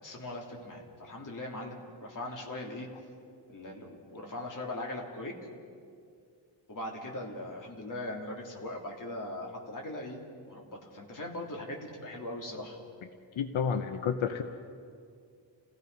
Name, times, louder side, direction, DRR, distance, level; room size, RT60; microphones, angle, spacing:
voice 1, 0.0-2.9 3.5-5.4 6.7-12.8, left 1 dB, 40° left, 0 dB, 3.0 m, -40 dB
voice 2, 13.4-14.4, left 7 dB, 85° left, 7 dB, 1.0 m, -30 dB
29.0 x 17.0 x 5.4 m, 2.3 s
wide cardioid pair, 180°, 46 cm